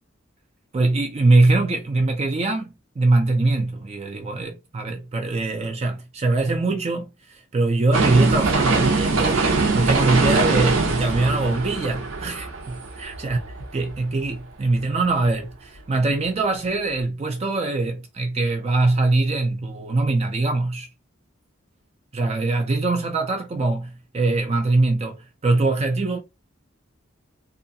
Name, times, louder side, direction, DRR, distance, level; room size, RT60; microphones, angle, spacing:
voice 1, 0.7-9.5 9.7-13.4 13.7-20.9 22.1-26.2, right 2 dB, 30° right, 0.4 m, -22 dB
sound 1, 7.9-13.9 14.3-14.4, right 3 dB, 75° right, 0.7 m, -22 dB
2.7 x 2.3 x 2.6 m
head